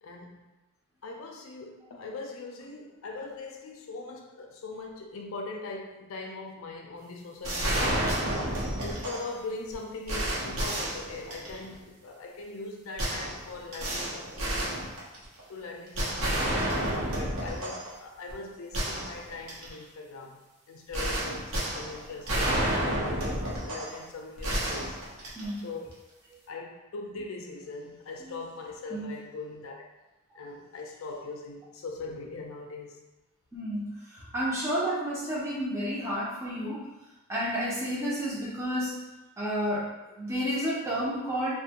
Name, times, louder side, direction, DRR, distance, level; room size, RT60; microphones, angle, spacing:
voice 1, 0.0-0.5 1.0-8.0 8.8-14.9 15.5-20.4 20.7-25.0 25.3-25.9 26.5-29.8 30.3-33.0, left 3 dB, 70° left, 1 dB, 0.4 m, -41 dB
sound 1, 7.4-9.3 9.7-9.8 10.1-11.7 13.0-15.4 16.0-17.9 18.3-18.4 18.7-19.7 20.9-24.0 24.4-25.7, right 1 dB, 75° right, 0.8 m, -30 dB
voice 2, 33.5-36.9 37.3-39.0 39.4-41.5, equal, 10° right, -7 dB, 0.5 m, -31 dB
2.5 x 2.1 x 2.8 m, 1.1 s
head